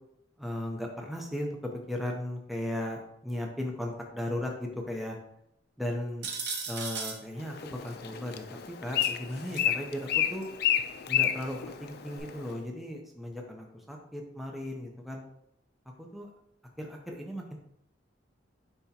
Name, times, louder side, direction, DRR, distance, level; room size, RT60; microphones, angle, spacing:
voice 1, 0.4-5.2 5.8-6.3 6.7-10.5 11.1-15.2 16.0-16.3 16.8-17.6, left 1 dB, ahead, 0 dB, 0.6 m, -36 dB
sound 1, 6.2-7.2 9.0-9.7 10.4-10.5 12.2-12.3, right 5 dB, 65° right, 1.0 m, -36 dB
Bird, 7.4-12.5, left 10 dB, 60° left, 0.4 m, -31 dB
9.5 x 3.5 x 2.9 m, 0.76 s
head